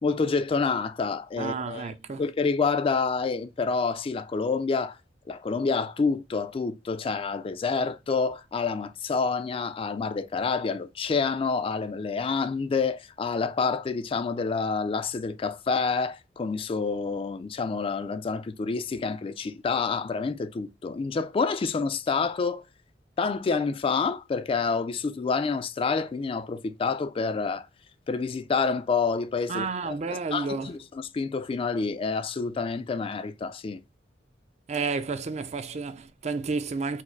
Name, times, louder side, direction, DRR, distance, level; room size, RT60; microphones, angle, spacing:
voice 1, 0.0-5.0 5.3-22.6 23.2-27.7 28.1-30.0 30.3-33.8, left 4 dB, 30° left, 0.3 m, -28 dB
voice 2, 1.4-2.2 29.5-30.8 34.7-37.0, right 4 dB, 40° right, 0.4 m, -31 dB
4.5 x 2.0 x 4.4 m
head